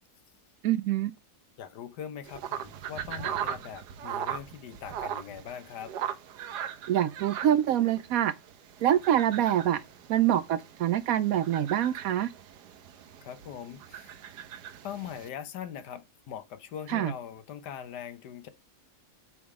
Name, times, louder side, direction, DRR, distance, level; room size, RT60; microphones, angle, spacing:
voice 1, 0.6-1.1 6.9-8.3 8.8-9.8 10.1-12.3 16.9-17.1, right 11 dB, 70° right, 0.9 m, -25 dB
voice 2, 1.6-6.0 13.2-14.2 14.8-18.5, left 9 dB, 85° left, 1.5 m, -41 dB
sound 1, 2.2-15.3, right 9 dB, 90° right, 1.4 m, -39 dB
8.6 x 3.7 x 4.8 m
omnidirectional pair, 1.7 m